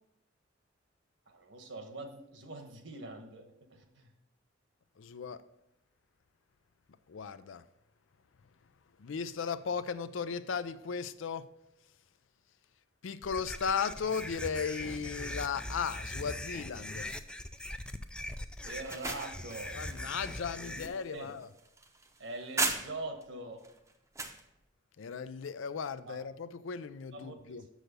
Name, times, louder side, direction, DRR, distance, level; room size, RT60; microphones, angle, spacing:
voice 1, 1.3-4.1 18.6-19.7 20.6-20.9 21.1-21.3 22.2-23.7 26.1-26.2 27.1-27.7, right 2 dB, 65° right, 1.2 m, -43 dB
voice 2, 5.0-5.4 7.1-7.6 9.0-11.5 13.0-17.1 19.7-21.5 25.0-27.6, left 6 dB, 80° left, 0.5 m, -36 dB
sound 1, 13.2-20.9, left 1 dB, 5° left, 0.3 m, -41 dB
sound 2, 18.6-23.2 23.6-24.4, right 3 dB, 15° right, 0.7 m, -38 dB
6.5 x 6.3 x 5.1 m
head